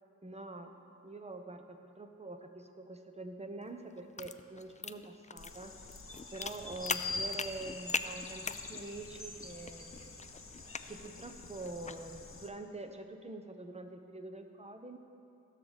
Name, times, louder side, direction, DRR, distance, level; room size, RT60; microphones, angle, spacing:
voice 1, 0.2-5.7 6.3-10.3 10.9-15.0, right 2 dB, 20° right, 6 dB, 1.0 m, -45 dB
sound 1, 3.6-12.1, left 4 dB, 25° left, 0.4 m, -42 dB
sound 2, 5.4-12.5, left 3 dB, 45° left, 1.2 m, -45 dB
16.0 x 6.6 x 4.1 m, 2.6 s
cardioid pair, 45°, 31 cm